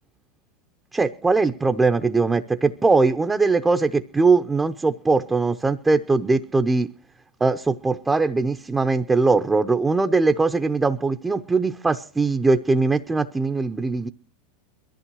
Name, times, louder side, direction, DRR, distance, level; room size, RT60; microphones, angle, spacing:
voice 1, 0.9-6.9 7.4-14.1, right 3 dB, 15° right, 0.8 m, -21 dB
22.0 x 14.0 x 3.0 m
hypercardioid pair, 95°, 0 cm